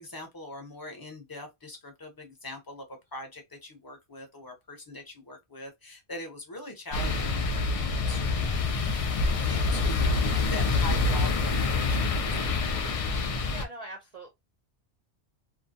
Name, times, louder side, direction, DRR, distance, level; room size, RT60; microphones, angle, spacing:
voice 1, 0.0-8.7 9.4-13.0, left 2 dB, 25° left, 0.7 m, -42 dB
sound 1, 6.9-13.6, left 3 dB, 70° left, 0.3 m, -26 dB
voice 2, 13.5-14.3, right 2 dB, 40° right, 0.6 m, -42 dB
2.6 x 2.1 x 2.6 m
omnidirectional pair, 1.2 m